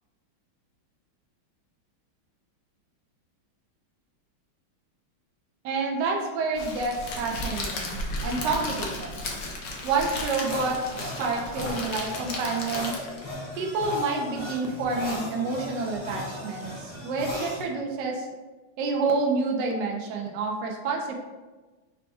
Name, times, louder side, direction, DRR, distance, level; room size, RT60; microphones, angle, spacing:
voice 1, 5.6-9.2 9.8-12.9 13.6-18.3 18.8-21.1, right 3 dB, 70° right, 1 dB, 1.1 m, -28 dB
Crackle, 6.6-13.3, left 2 dB, 80° left, 0.7 m, -34 dB
sound 1, 10.5-17.6, left 1 dB, 20° left, 0.7 m, -37 dB
4.4 x 2.2 x 4.1 m, 1.2 s
omnidirectional pair, 2.3 m